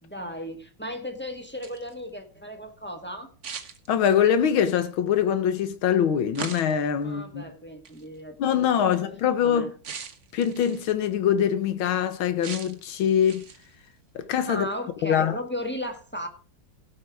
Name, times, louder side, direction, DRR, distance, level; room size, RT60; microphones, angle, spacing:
voice 1, 0.0-3.3 7.0-9.0 9.4-9.7 14.5-16.3, equal, 5° left, 1.2 m, -36 dB
sound 1, 1.4-1.9 3.4-4.4 6.4-6.9 7.9-8.0 9.8-10.9 12.4-12.9 13.3-13.7, right 6 dB, 45° right, 1.2 m, -39 dB
voice 2, 3.9-7.4 8.4-9.7 10.3-13.4 14.1-14.6 15.0-15.4, left 8 dB, 85° left, 1.8 m, -23 dB
17.0 x 5.9 x 4.7 m
omnidirectional pair, 2.2 m